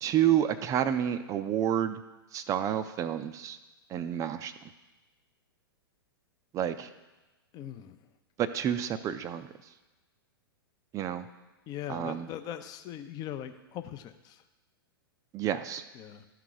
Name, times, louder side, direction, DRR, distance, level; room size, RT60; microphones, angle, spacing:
voice 1, 0.0-2.0 2.3-3.6 3.9-4.5 6.5-6.9 8.4-9.5 10.9-11.2 11.9-12.3 15.3-15.8, right 10 dB, 25° right, 12 dB, 0.4 m, -29 dB
voice 2, 7.5-8.0 11.7-14.4 15.9-16.2, left 10 dB, 30° left, 10 dB, 0.6 m, -40 dB
13.0 x 4.8 x 3.9 m, 1.1 s
figure-of-eight pair, 105°, 13 cm